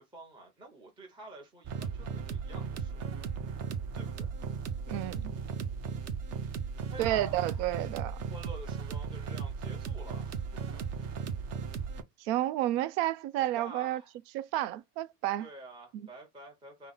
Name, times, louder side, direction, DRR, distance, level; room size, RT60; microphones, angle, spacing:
voice 1, 0.0-3.0 3.9-4.3 6.9-7.9 8.3-11.1 13.4-14.1 15.4-16.9, right 2 dB, 10° right, 0.8 m, -49 dB
sound 1, 1.6-12.0, right 6 dB, 35° right, 0.6 m, -36 dB
voice 2, 4.9-5.3 7.0-8.2 12.2-14.0 14.3-15.5, right 14 dB, 75° right, 0.6 m, -31 dB
5.4 x 2.1 x 3.9 m
cardioid pair, 150°, 48 cm